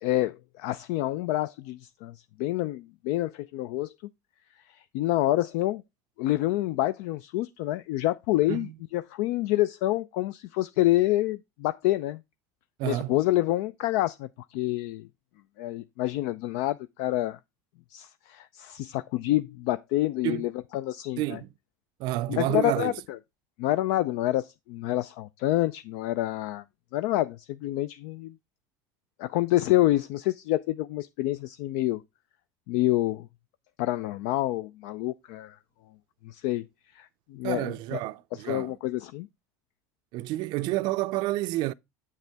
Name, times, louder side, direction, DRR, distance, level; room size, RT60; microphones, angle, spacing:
voice 1, 0.0-3.9 4.7-5.8 6.2-12.2 12.8-15.1 15.6-17.4 17.9-21.4 22.3-22.9 23.6-26.6 26.9-28.3 29.2-32.0 32.7-33.3 33.8-35.6 36.2-36.6 36.9-38.0 38.3-39.3, left 16 dB, 75° left, 0.4 m, -27 dB
voice 2, 12.8-13.2 20.2-20.5 21.2-21.5 22.0-23.0 37.4-38.8 40.1-41.7, right 17 dB, 65° right, 0.4 m, -29 dB
7.3 x 6.5 x 3.4 m
supercardioid pair, 100°, 8 cm